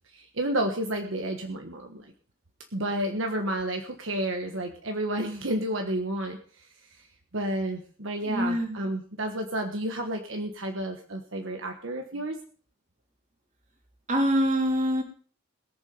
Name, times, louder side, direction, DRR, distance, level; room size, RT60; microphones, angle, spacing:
voice 1, 0.1-2.1 2.7-6.6 6.9-7.0 7.3-12.4, right 1 dB, 65° right, 4 dB, 1.4 m, -31 dB
voice 2, 8.2-8.8 14.1-15.0, equal, 35° right, 3 dB, 2.8 m, -25 dB
21.0 x 7.3 x 5.3 m, 0.43 s
head